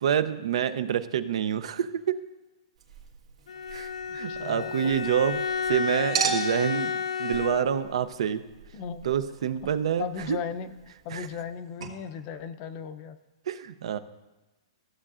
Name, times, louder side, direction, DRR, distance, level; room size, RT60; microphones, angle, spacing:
voice 1, 0.0-2.2 3.7-5.4 5.7-8.4 9.0-10.4 11.1-11.3 13.5-14.0, right 9 dB, 70° right, 13 dB, 0.5 m, -27 dB
Chink clink, 2.8-5.7 6.1-11.5 11.8-11.9, right 6 dB, 85° right, 1.6 m, -37 dB
Bowed string instrument, 3.5-8.0, left 6 dB, 85° left, 0.5 m, -31 dB
voice 2, 4.1-4.9 8.7-9.1 10.0-10.7 11.0-13.2, left 7 dB, 35° left, 10 dB, 0.5 m, -37 dB
14.5 x 7.3 x 2.5 m, 1.1 s
hypercardioid pair, 145°, 3 cm